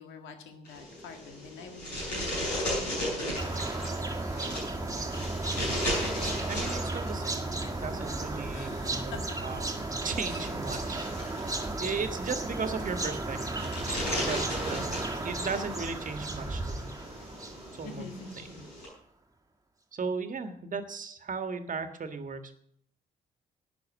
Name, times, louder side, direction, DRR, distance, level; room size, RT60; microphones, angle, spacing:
voice 1, 0.0-3.4 3.7-4.2 8.5-9.2 10.2-10.5 14.7-15.0 17.8-18.6, left 4 dB, 65° left, 5 dB, 1.9 m, -46 dB
sound 1, 0.6-18.8, equal, 85° left, 7.2 m, -37 dB
sound 2, 3.3-18.5, right 2 dB, 15° right, 1.8 m, -34 dB
voice 2, 6.5-9.1 9.4-9.6 10.0-11.1 11.8-14.9 15.2-16.9 17.8-18.0 19.9-22.5, right 4 dB, 40° right, 8 dB, 1.6 m, -36 dB
12.0 x 9.2 x 7.5 m, 0.67 s
figure-of-eight pair, 40°, 21 cm